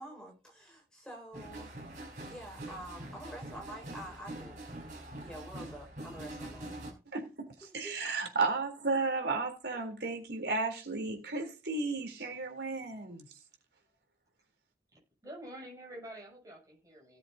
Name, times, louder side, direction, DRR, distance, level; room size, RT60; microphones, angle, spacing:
voice 1, 0.0-1.7 2.2-4.6 5.2-6.7 7.6-8.0, right 1 dB, 5° left, 4.8 m, -47 dB
sound 1, 1.3-6.9, right 1 dB, 45° right, 4.9 m, -44 dB
voice 2, 7.1-13.3, right 3 dB, 75° right, 3.6 m, -34 dB
voice 3, 15.2-17.2, right 1 dB, 20° right, 7.0 m, -47 dB
18.5 x 7.4 x 2.8 m
head